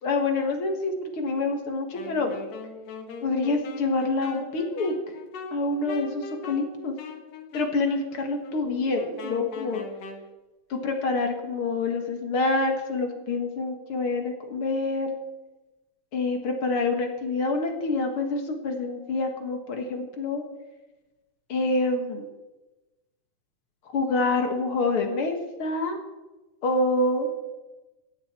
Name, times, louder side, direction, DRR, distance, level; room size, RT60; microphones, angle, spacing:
voice 1, 0.0-2.4 3.2-5.0 5.5-7.0 7.5-9.8 10.7-15.1 16.1-20.4 21.5-22.3 23.9-26.0 26.6-27.3, left 3 dB, 50° left, 4 dB, 2.2 m, -27 dB
Wind instrument woodwind instrument, 1.9-10.3, left 3 dB, 80° left, 3.2 m, -41 dB
18.0 x 14.0 x 4.4 m, 1.1 s
omnidirectional pair, 3.8 m